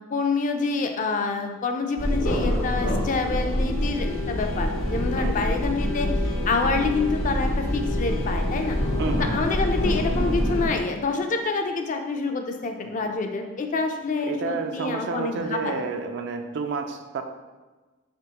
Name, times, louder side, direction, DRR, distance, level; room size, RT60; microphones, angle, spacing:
voice 1, 0.1-6.1 6.5-8.8 9.1-15.8, left 4 dB, 40° left, 5 dB, 0.4 m, -27 dB
sound 1, 2.0-10.7, left 1 dB, 80° left, 0.8 m, -25 dB
voice 2, 9.0-9.4 14.3-17.2, right 4 dB, 60° right, 6 dB, 0.4 m, -30 dB
4.2 x 3.4 x 2.9 m, 1.2 s
head